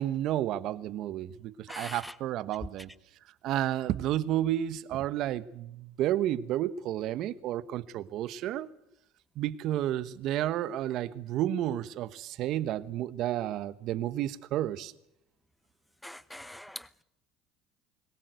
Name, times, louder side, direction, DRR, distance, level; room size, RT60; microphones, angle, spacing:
voice 1, 0.0-2.9 3.4-8.7 9.4-14.9, right 12 dB, 60° right, 1.2 m, -31 dB
voice 2, 1.7-2.1 16.0-17.0, left 1 dB, 5° left, 0.9 m, -43 dB
22.5 x 19.0 x 8.1 m
supercardioid pair, 90°, 0 cm